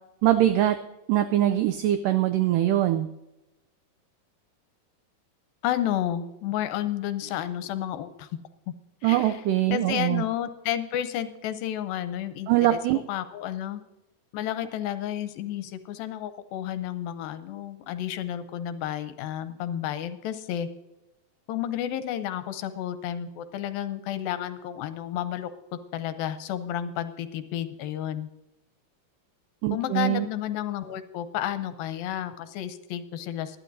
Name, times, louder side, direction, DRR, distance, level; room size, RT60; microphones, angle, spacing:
voice 1, 0.2-0.8 1.1-3.1 9.0-10.2 12.5-13.0 29.6-30.3, right 13 dB, 85° right, 9 dB, 1.9 m, -22 dB
voice 2, 5.6-8.3 9.0-9.5 9.7-12.8 13.1-13.8 14.3-20.7 21.5-25.5 25.9-28.3 29.7-33.6, left 11 dB, 80° left, 12 dB, 2.3 m, -31 dB
20.0 x 12.0 x 2.6 m, 0.98 s
omnidirectional pair, 4.4 m